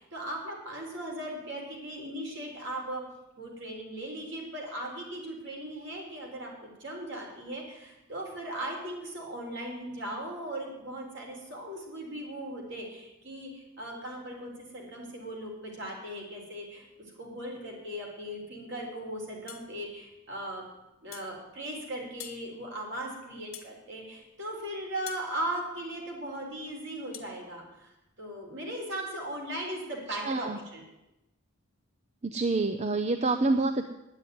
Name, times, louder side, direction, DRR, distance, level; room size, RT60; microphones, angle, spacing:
voice 1, 0.0-3.0 3.4-16.8 17.2-20.6 21.0-30.8, right 1 dB, 60° right, -1 dB, 4.2 m, -38 dB
sound 1, 19.5-19.7 21.1-21.3 22.2-22.4 23.5-23.8 25.1-25.3 27.1-27.3, left 12 dB, 85° left, 1.5 m, -44 dB
voice 2, 30.2-30.6 32.3-33.8, right 3 dB, 35° right, 7 dB, 0.6 m, -27 dB
9.9 x 9.5 x 9.4 m, 0.95 s
head